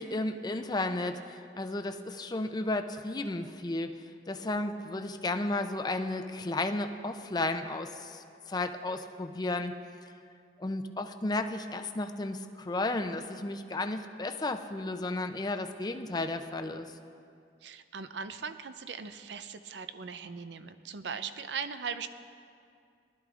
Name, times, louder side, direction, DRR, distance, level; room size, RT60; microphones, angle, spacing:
voice 1, 0.0-3.9 4.3-9.7 10.6-16.9, left 2 dB, 25° left, 7 dB, 0.5 m, -33 dB
voice 2, 17.6-22.1, right 6 dB, 80° right, 11 dB, 0.5 m, -39 dB
19.0 x 12.0 x 2.5 m, 2.4 s
head